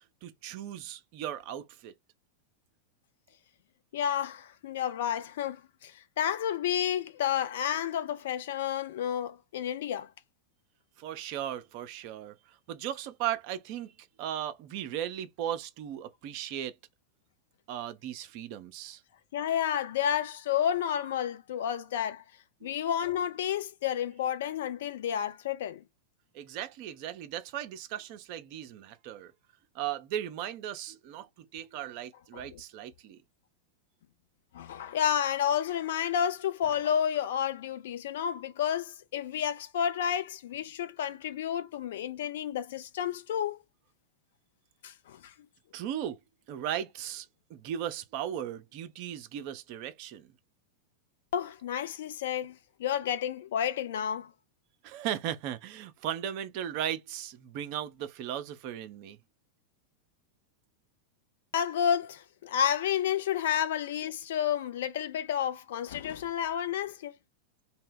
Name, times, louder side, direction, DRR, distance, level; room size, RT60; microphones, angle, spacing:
voice 1, 0.2-1.9 11.0-13.9 14.2-16.7 17.7-19.0 22.6-22.7 26.3-29.3 29.7-33.2 45.7-46.2 46.5-50.3 54.8-59.2, right 11 dB, 45° right, 0.4 m, -37 dB
voice 2, 3.9-10.1 19.3-22.2 22.6-25.8 32.3-32.6 34.5-43.6 44.8-45.3 51.3-54.3 61.5-67.1, left 9 dB, 55° left, 0.4 m, -31 dB
2.0 x 2.0 x 3.6 m
figure-of-eight pair, 90°, 0 cm